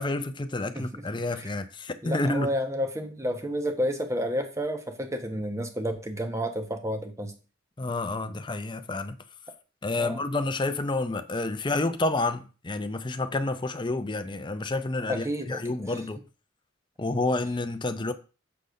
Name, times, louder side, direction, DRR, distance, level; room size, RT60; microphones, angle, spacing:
voice 1, 0.0-2.5 7.8-9.2 9.8-16.2 17.0-18.1, left 2 dB, 25° left, 0.6 m, -29 dB
voice 2, 0.7-1.5 2.0-7.3 10.0-10.2 15.1-15.9, equal, 15° right, 1.0 m, -31 dB
6.8 x 4.0 x 6.3 m
head